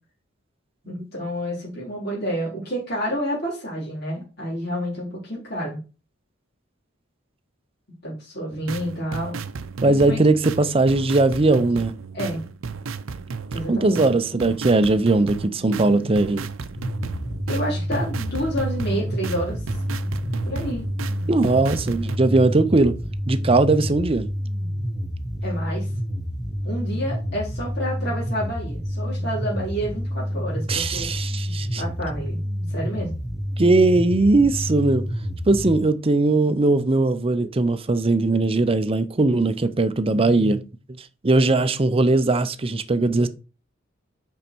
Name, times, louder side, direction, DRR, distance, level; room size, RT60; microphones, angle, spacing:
voice 1, 0.9-5.8 8.0-9.4 9.8-10.2 12.1-12.4 13.5-14.0 17.5-19.6 20.5-20.9 25.4-25.9 26.6-31.1 31.8-32.4 32.7-33.2, equal, 55° left, 3.7 m, -29 dB
sound 1, 8.5-22.2, right 5 dB, 80° right, 0.5 m, -34 dB
voice 2, 9.8-11.9 13.7-16.5 21.3-23.0 23.3-24.3 30.7-31.8 33.6-35.0 35.5-40.6 41.2-43.3, right 2 dB, 30° right, 0.6 m, -19 dB
sound 2, 16.8-35.8, equal, 5° right, 1.2 m, -28 dB
5.6 x 5.5 x 4.5 m
head